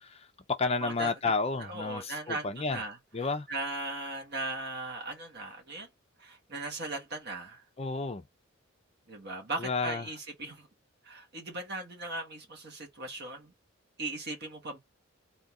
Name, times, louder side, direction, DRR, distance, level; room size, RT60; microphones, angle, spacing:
voice 1, 0.0-2.8 3.1-3.5 7.8-8.2 9.6-10.0, left 3 dB, 30° left, 0.6 m, -31 dB
voice 2, 0.8-1.1 1.6-3.0 3.5-5.9 6.2-7.6 9.1-10.7 11.0-13.5 14.0-14.8, right 2 dB, 50° right, 1.7 m, -38 dB
4.1 x 2.8 x 3.7 m
head